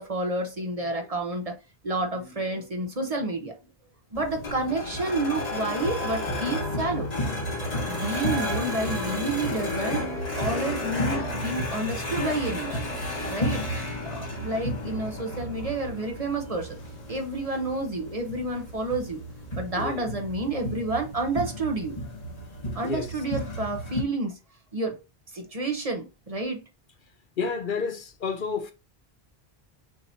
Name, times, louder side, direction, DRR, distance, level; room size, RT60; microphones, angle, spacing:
voice 1, 0.0-1.6 1.8-3.5 4.1-7.1 7.9-10.1 10.3-12.8 13.2-13.6 14.1-16.8 17.1-19.2 19.5-22.0 22.7-24.4 24.7-25.0 25.3-26.6, right 2 dB, 40° right, 0.9 m, -30 dB
sound 1, 4.1-24.0, left 1 dB, 40° left, 1.4 m, -32 dB
voice 2, 22.7-23.1 27.4-28.7, left 5 dB, 60° left, 0.7 m, -30 dB
6.2 x 2.8 x 2.7 m
omnidirectional pair, 1.0 m